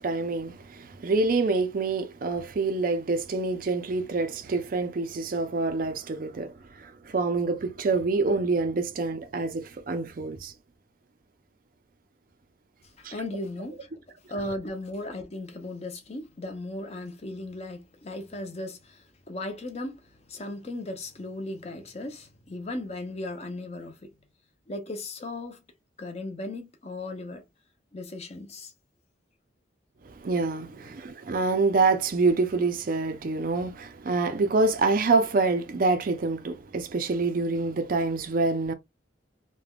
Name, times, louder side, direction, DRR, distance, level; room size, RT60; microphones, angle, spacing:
voice 1, 0.0-10.5 13.0-13.1 30.1-38.7, right 3 dB, 45° right, 0.4 m, -26 dB
voice 2, 13.0-14.0 14.3-24.1 24.7-25.6 26.0-27.4 27.9-28.7 30.8-30.9, left 1 dB, 35° left, 0.6 m, -37 dB
3.3 x 2.1 x 2.3 m
head